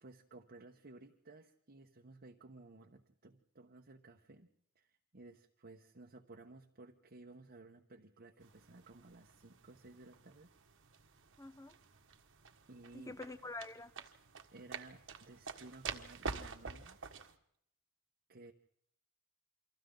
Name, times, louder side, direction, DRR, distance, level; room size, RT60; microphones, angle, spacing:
voice 1, 0.0-4.5 4.7-10.5 12.7-13.2 14.5-17.0 18.3-18.5, right 2 dB, 50° right, 2 dB, 1.2 m, -56 dB
sound 1, 8.4-17.3, right 5 dB, 65° right, 1.6 m, -48 dB
voice 2, 11.4-11.7 12.9-13.9, left 2 dB, 15° left, 14 dB, 0.9 m, -46 dB
29.0 x 25.0 x 3.9 m, 0.70 s
head